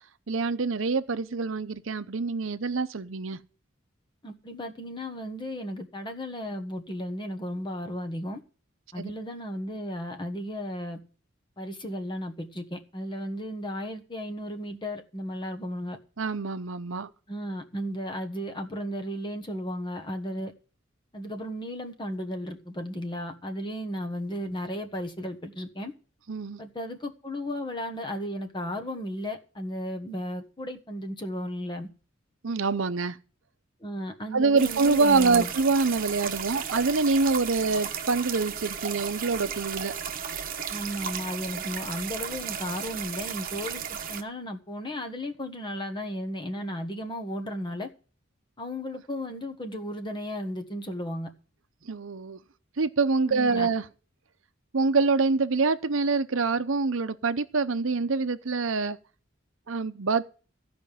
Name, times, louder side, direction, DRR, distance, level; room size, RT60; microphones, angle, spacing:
voice 1, 0.3-3.4 9.0-9.1 16.2-17.1 26.3-26.6 32.4-33.2 34.3-39.9 51.9-52.4 52.8-53.8 54.7-59.0 59.7-60.2, right 4 dB, 70° right, 0.7 m, -25 dB
voice 2, 4.2-8.4 8.9-11.0 11.6-16.0 17.3-20.5 21.1-25.9 26.6-31.9 33.8-35.5 40.7-47.9 48.6-51.3 53.3-53.7, equal, 25° left, 1.4 m, -34 dB
sound 1, 34.6-44.2, right 7 dB, 45° right, 1.1 m, -34 dB
15.0 x 5.2 x 9.2 m
head